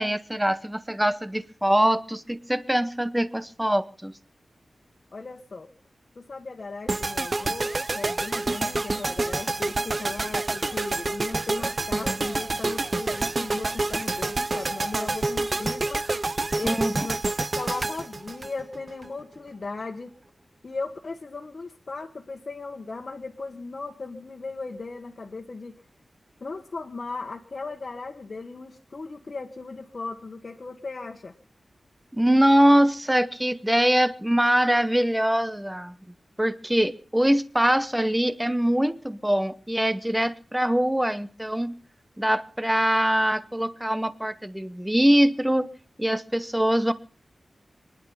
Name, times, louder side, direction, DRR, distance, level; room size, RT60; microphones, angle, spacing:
voice 1, 0.0-4.1 16.6-17.1 32.1-35.9 36.4-41.8 42.2-45.7 46.0-46.9, equal, 10° right, 14 dB, 0.9 m, -23 dB
voice 2, 5.1-5.7 6.1-16.1 16.6-20.1 20.6-25.7 26.4-31.4, left 3 dB, 50° left, 1 dB, 1.4 m, -37 dB
sound 1, 6.9-19.1, right 2 dB, 40° right, 0.7 m, -28 dB
24.0 x 11.0 x 5.6 m, 0.43 s
wide cardioid pair, 95°, 0 cm